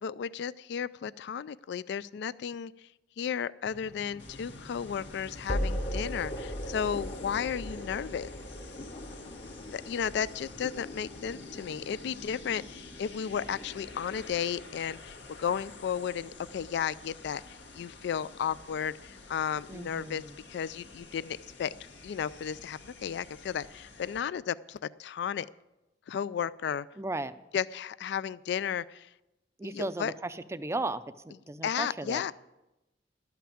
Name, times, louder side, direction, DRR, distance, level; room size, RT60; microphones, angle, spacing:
voice 1, 0.0-2.9 3.2-8.3 9.7-20.2 20.5-25.5 26.1-26.9 27.5-29.1 29.6-30.1 31.6-32.3, left 8 dB, 70° left, 19 dB, 0.3 m, -34 dB
sound 1, 3.7-14.7, equal, 40° left, 1.0 m, -39 dB
sound 2, 4.2-24.2, left 3 dB, 90° left, 1.9 m, -49 dB
voice 2, 19.7-20.3 27.0-27.4 29.6-32.3, right 2 dB, 15° right, 12 dB, 0.4 m, -36 dB
12.5 x 5.9 x 8.4 m, 0.98 s
head